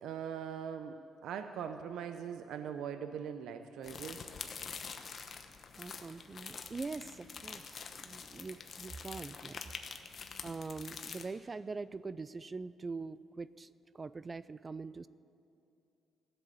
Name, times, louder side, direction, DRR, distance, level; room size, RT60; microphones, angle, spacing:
voice 1, 0.0-4.3, right 8 dB, 80° right, 8 dB, 0.6 m, -41 dB
sound 1, 3.8-11.3, left 5 dB, 50° left, 1.0 m, -46 dB
voice 2, 5.8-9.6 10.4-13.7 13.9-15.1, right 4 dB, 30° right, 17 dB, 0.4 m, -43 dB
14.5 x 7.9 x 9.5 m, 2.6 s
cardioid pair, 90°, 0 cm